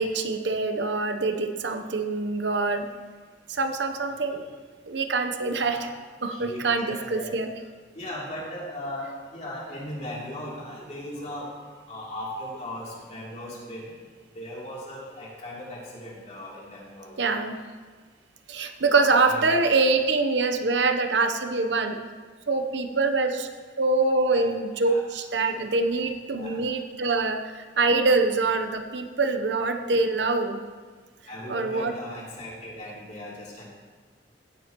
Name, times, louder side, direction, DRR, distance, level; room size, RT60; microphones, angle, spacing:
voice 1, 0.0-2.9 3.5-4.4 4.9-5.9 6.2-7.5 17.2-17.6 18.5-22.0 22.5-23.5 23.8-30.6 31.5-31.9, right 3 dB, 70° right, 7 dB, 0.9 m, -24 dB
voice 2, 5.5-5.9 6.3-7.4 7.9-11.5 11.9-13.9 14.3-17.2 18.9-19.7 24.3-24.5 24.7-25.0 25.9-26.6 31.2-33.6, left 1 dB, 40° left, -5 dB, 3.1 m, -38 dB
16.5 x 9.7 x 3.0 m, 1.5 s
head